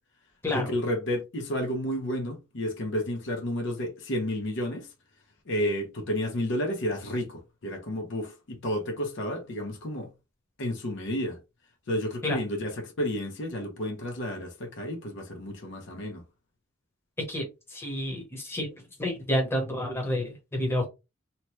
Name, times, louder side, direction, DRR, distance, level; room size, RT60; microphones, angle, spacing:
voice 1, 0.5-4.9 5.5-10.1 10.6-11.4 11.9-16.2, equal, 60° left, 0.7 m, -31 dB
voice 2, 17.2-18.7 19.0-20.9, left 1 dB, 10° left, 0.9 m, -29 dB
2.9 x 2.2 x 3.0 m
head